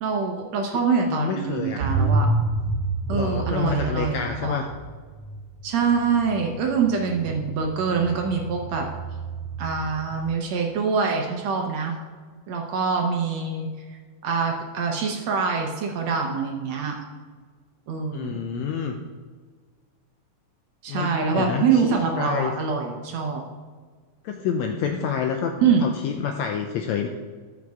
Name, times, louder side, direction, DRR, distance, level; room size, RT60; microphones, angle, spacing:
voice 1, 0.0-2.3 3.1-4.6 5.6-8.9 9.6-12.0 12.5-13.7 14.2-17.0 17.9-18.4 20.8-23.4 25.6-25.9, right 5 dB, 70° right, 2 dB, 1.8 m, -24 dB
voice 2, 1.1-1.8 3.1-4.7 18.1-19.0 20.9-22.5 24.2-25.5 25.8-27.1, left 7 dB, 80° left, 4 dB, 1.6 m, -28 dB
sound 1, 1.8-10.3, right 2 dB, 90° right, 1.5 m, -29 dB
13.5 x 6.3 x 3.5 m, 1.5 s
omnidirectional pair, 3.8 m